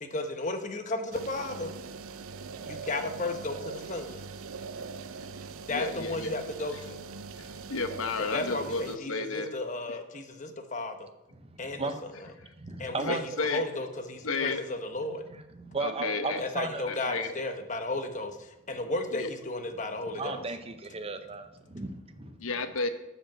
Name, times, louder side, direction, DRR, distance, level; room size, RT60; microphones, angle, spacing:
voice 1, 0.0-1.8 2.7-4.2 5.7-7.0 8.2-11.1 11.6-11.9 12.8-13.2 13.5-15.2 16.4-20.4, left 2 dB, 35° left, 6 dB, 1.1 m, -34 dB
sound 1, 1.1-9.0, right 4 dB, 80° right, 0.6 m, -42 dB
voice 2, 5.7-6.3 7.4-9.5 12.4-12.5 13.0-13.6 14.2-14.6 15.8-16.4 16.9-17.3 19.1-19.3 22.4-22.9, left 3 dB, 75° left, 9 dB, 1.0 m, -32 dB
voice 3, 11.3-13.4 15.3-16.9 20.1-22.4, right 3 dB, 30° right, 8 dB, 0.7 m, -36 dB
12.0 x 5.2 x 7.6 m, 0.95 s
head